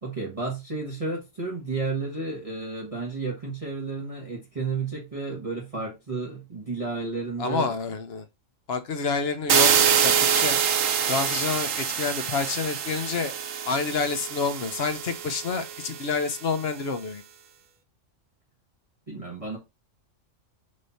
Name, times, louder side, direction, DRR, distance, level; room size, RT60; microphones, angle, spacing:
voice 1, 0.0-7.7 19.1-19.6, right 3 dB, 25° right, 1.5 m, -32 dB
voice 2, 7.4-8.3 8.7-10.6 11.1-13.3 13.7-17.2, left 4 dB, 55° left, 1.1 m, -28 dB
sound 1, 9.5-16.3, right 8 dB, 80° right, 1.2 m, -25 dB
6.5 x 3.0 x 5.6 m
omnidirectional pair, 1.3 m